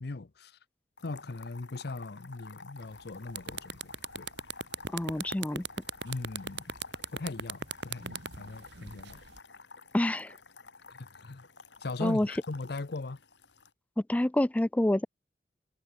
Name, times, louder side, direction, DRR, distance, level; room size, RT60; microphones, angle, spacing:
voice 1, 0.0-0.6 1.0-4.3 6.0-6.7 7.1-9.2 11.0-11.4 11.8-13.2, left 3 dB, 65° left, 0.8 m, -39 dB
sound 1, 1.0-13.7, left 4 dB, 85° left, 5.2 m, -51 dB
sound 2, 2.9-3.0 3.3-9.4, right 6 dB, 80° right, 2.2 m, -37 dB
voice 2, 4.9-5.7 9.9-10.3 12.0-12.3 14.0-15.1, left 1 dB, 10° left, 0.3 m, -27 dB
head